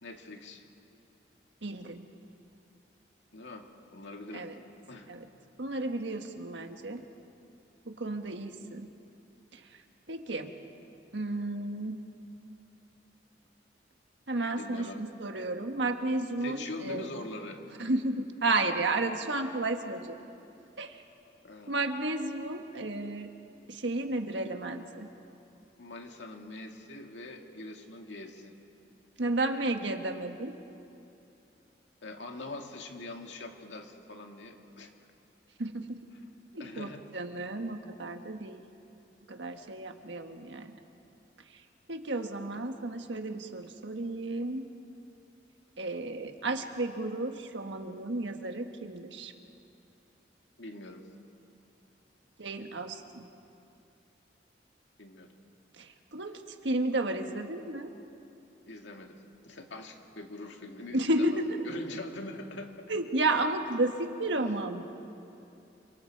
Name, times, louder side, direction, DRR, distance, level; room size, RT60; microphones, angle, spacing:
voice 1, 0.0-0.6 3.3-4.5 4.9-5.1 14.6-15.0 16.4-17.6 21.4-21.8 25.8-28.5 32.0-34.9 36.6-37.0 50.6-51.0 55.0-55.3 58.7-59.1 59.4-61.4 61.6-62.9, left 2 dB, 80° left, 3 dB, 2.1 m, -43 dB
voice 2, 1.6-2.0 4.3-4.5 5.1-5.3 5.6-7.0 7.9-8.9 9.5-9.6 10.1-10.5 11.1-12.0 14.3-17.1 17.8-20.2 20.8-21.0 21.7-23.3 23.7-25.1 29.2-30.5 35.6-36.0 36.5-38.6 39.3-40.7 41.9-44.7 45.8-49.3 52.4-53.2 55.8-57.9 60.9-61.6 62.9-64.8, right 2 dB, 80° right, 6 dB, 1.5 m, -32 dB
28.5 x 25.5 x 4.7 m, 2.8 s
head